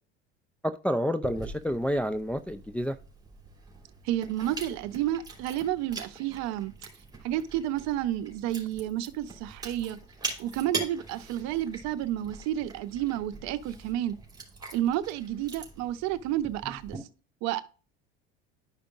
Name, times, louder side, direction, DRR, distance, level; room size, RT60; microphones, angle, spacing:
voice 1, 0.6-3.0, equal, 5° left, 0.3 m, -29 dB
Chewing mastication, 1.2-17.0, right 3 dB, 10° right, 2.8 m, -43 dB
voice 2, 4.0-6.7 7.2-10.0 10.4-14.1 14.7-17.1 17.4-17.6, right 12 dB, 55° right, 0.7 m, -30 dB
11.5 x 5.1 x 2.5 m
hypercardioid pair, 75°, 32 cm